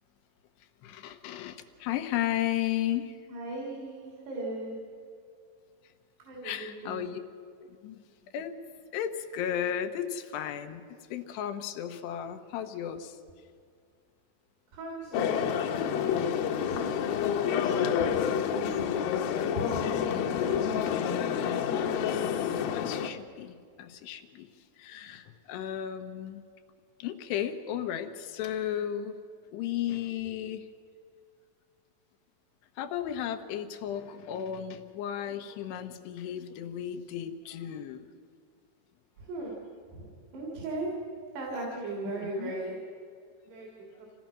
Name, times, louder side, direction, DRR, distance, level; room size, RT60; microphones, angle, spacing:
voice 1, 0.8-3.2 6.4-7.2 7.6-8.0 8.3-8.5 8.9-13.2 20.0-20.3 21.9-26.4 27.0-29.2 29.5-30.7 32.8-38.1 42.1-42.5, left 10 dB, 90° left, 8 dB, 3.1 m, -35 dB
voice 2, 3.3-4.8 6.2-7.1 14.7-18.9 19.6-20.6 39.2-39.6 39.9-40.9 41.3-42.8 43.4-43.7 44.0-44.1, right 2 dB, 75° right, -3 dB, 5.3 m, -38 dB
sound 1, 15.1-23.1, left 8 dB, 75° left, 2.4 m, -28 dB
27.0 x 17.5 x 5.9 m, 2.2 s
omnidirectional pair, 4.8 m